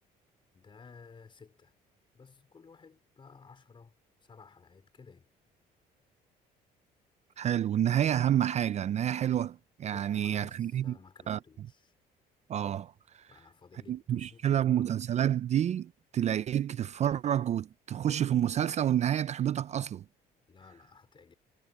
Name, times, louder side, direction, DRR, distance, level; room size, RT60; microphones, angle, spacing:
voice 1, 0.5-1.7 2.1-3.9 4.2-5.3 9.9-11.9 13.3-14.9 20.5-21.3, left 5 dB, 30° left, 4.3 m, -55 dB
voice 2, 7.4-11.0 11.3-11.4 12.5-13.3 13.9-20.0, right 10 dB, 40° right, 0.4 m, -29 dB
cardioid pair, 110°, 17 cm